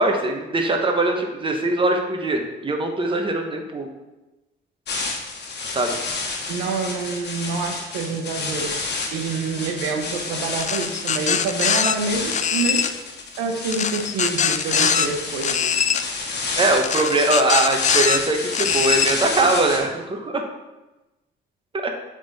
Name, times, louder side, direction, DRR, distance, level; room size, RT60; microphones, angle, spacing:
voice 1, 0.0-3.9 5.7-5.9 16.6-20.4 21.8-21.9, right 2 dB, 25° right, 3 dB, 1.1 m, -21 dB
sound 1, 4.9-19.8, left 3 dB, 55° left, 1.4 m, -30 dB
voice 2, 6.5-8.7 9.1-12.9 13.4-16.0, right 4 dB, 90° right, 3 dB, 0.9 m, -27 dB
sound 2, 10.6-11.9 12.3-12.9 13.7-15.1 15.4-16.0 16.8-18.2 18.5-19.1, left 8 dB, 35° left, 0.4 m, -22 dB
8.0 x 3.7 x 4.1 m, 1.1 s
cardioid pair, 85°, 21 cm